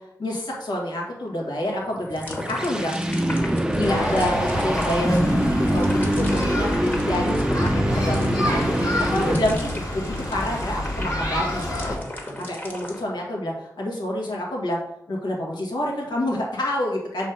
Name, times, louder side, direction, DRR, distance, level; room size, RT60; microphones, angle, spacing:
voice 1, 0.2-2.9 3.7-12.0 12.4-14.8 15.1-17.3, left 1 dB, 90° left, -2 dB, 1.8 m, -28 dB
sound 1, 2.0-9.8, right 1 dB, 10° right, 0.5 m, -24 dB
sound 2, 2.1-13.0, left 1 dB, 30° left, 1.5 m, -37 dB
sound 3, 3.8-12.0, left 1 dB, 60° left, 1.7 m, -28 dB
6.4 x 3.2 x 5.1 m, 0.82 s
wide cardioid pair, 85°, 7 cm